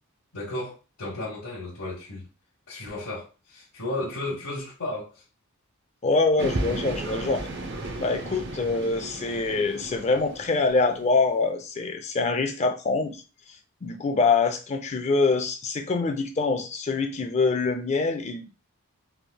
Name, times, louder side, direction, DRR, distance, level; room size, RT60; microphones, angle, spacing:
voice 1, 0.3-2.3 2.7-5.2, left 2 dB, 65° left, 1.0 m, -34 dB
voice 2, 6.0-7.5 8.0-13.2 13.8-18.5, left 3 dB, 30° left, 0.4 m, -25 dB
sound 1, 6.4-11.1, right 2 dB, 55° right, 0.6 m, -34 dB
3.4 x 3.0 x 2.2 m
head